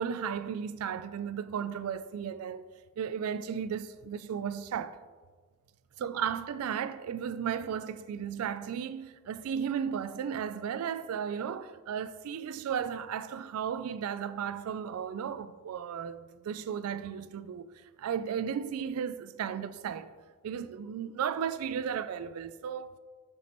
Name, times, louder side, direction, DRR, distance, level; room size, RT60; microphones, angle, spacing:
voice 1, 0.0-2.7 3.0-5.0 6.0-17.7 18.0-20.1 20.4-22.9, right 8 dB, 80° right, 0.3 m, -35 dB
7.4 x 6.7 x 3.0 m
head